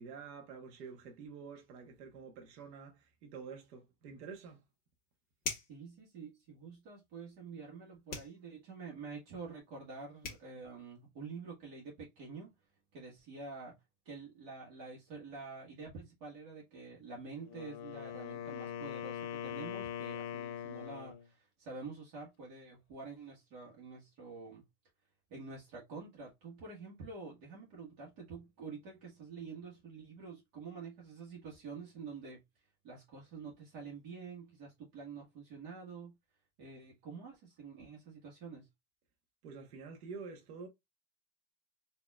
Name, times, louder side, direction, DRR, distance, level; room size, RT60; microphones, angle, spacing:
voice 1, 0.0-4.6 39.4-40.7, right 5 dB, 85° right, 1.2 m, -48 dB
sound 1, 5.4-5.8 8.1-8.4 9.9-10.0 10.2-10.5, left 4 dB, 20° left, 1.5 m, -40 dB
voice 2, 5.7-12.5 12.9-13.8 14.0-24.6 25.3-32.4 32.8-36.1 36.6-38.7, right 4 dB, 45° right, 1.4 m, -48 dB
Wind instrument woodwind instrument, 17.4-21.3, left 9 dB, 70° left, 0.9 m, -42 dB
4.4 x 2.8 x 2.3 m
supercardioid pair, 150°, 45 cm